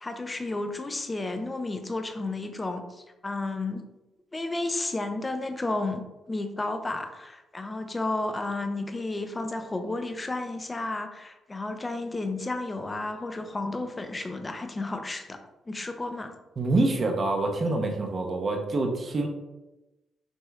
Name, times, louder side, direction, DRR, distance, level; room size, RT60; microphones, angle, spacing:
voice 1, 0.0-3.8 4.3-15.4 15.7-16.3, left 2 dB, 20° left, 7 dB, 0.5 m, -32 dB
voice 2, 16.6-19.3, right 2 dB, 40° right, 3 dB, 0.8 m, -26 dB
6.1 x 3.0 x 2.4 m, 1.0 s
cardioid pair, 90°, 0 cm